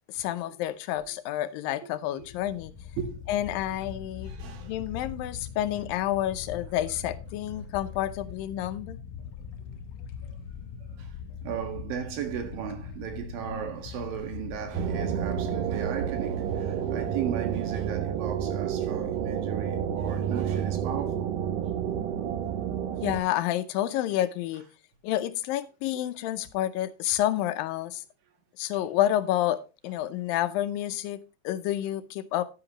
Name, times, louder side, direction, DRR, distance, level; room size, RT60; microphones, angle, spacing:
voice 1, 0.1-2.7 3.3-4.3 4.6-9.0 23.0-24.7 25.0-28.0 28.6-31.2 31.4-32.4, left 13 dB, 85° left, 2.5 m, -29 dB
voice 2, 1.8-2.3 3.0-3.3 3.7-3.8 4.2-4.7 9.7-9.8 10.2-10.4 10.8-21.3 28.7-28.8, right 8 dB, 90° right, 3.4 m, -36 dB
sound 1, 2.2-15.6, left 6 dB, 70° left, 2.2 m, -42 dB
sound 2, 14.7-23.2, right 8 dB, 70° right, 2.5 m, -30 dB
10.5 x 9.9 x 3.0 m
omnidirectional pair, 4.0 m